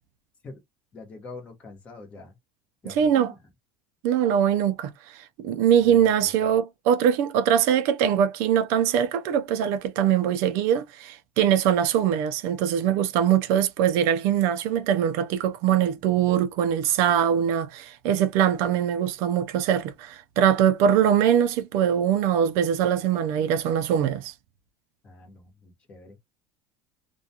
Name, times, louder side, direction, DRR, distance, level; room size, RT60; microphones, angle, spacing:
voice 1, 0.9-2.4 2.8-3.4 5.8-6.6 25.0-26.2, left 3 dB, 20° left, 1.0 m, -45 dB
voice 2, 2.9-3.3 4.0-24.3, right 9 dB, 55° right, 0.4 m, -22 dB
2.3 x 2.2 x 2.7 m
cardioid pair, 175°, 6 cm